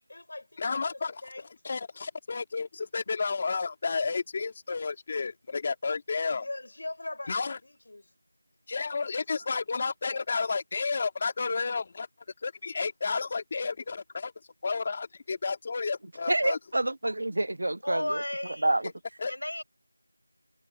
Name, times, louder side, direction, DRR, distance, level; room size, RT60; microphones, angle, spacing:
voice 1, 0.0-1.5 6.3-8.1, left 2 dB, 40° left, 4.9 m, -42 dB
voice 2, 0.6-1.2 1.6-6.5 7.3-7.6 8.7-12.1 12.4-14.3 14.6-16.6 19.2-19.3, left 4 dB, 20° left, 2.6 m, -31 dB
voice 3, 16.3-18.2 18.6-18.9, right 1 dB, 50° right, 0.7 m, -27 dB
voice 4, 17.8-18.7 19.3-19.6, left 1 dB, 85° left, 5.9 m, -33 dB
figure-of-eight pair, 175°, 0 cm